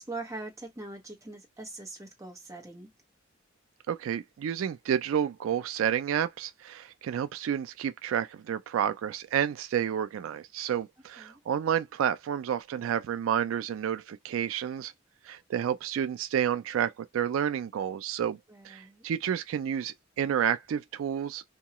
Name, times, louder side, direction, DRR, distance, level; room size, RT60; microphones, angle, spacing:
voice 1, 0.0-2.9 11.2-11.4 18.5-19.0, right 2 dB, 15° right, 0.8 m, -42 dB
voice 2, 3.9-14.9 15.2-18.4 18.6-21.4, right 9 dB, 80° right, 0.3 m, -30 dB
2.8 x 2.3 x 2.8 m
head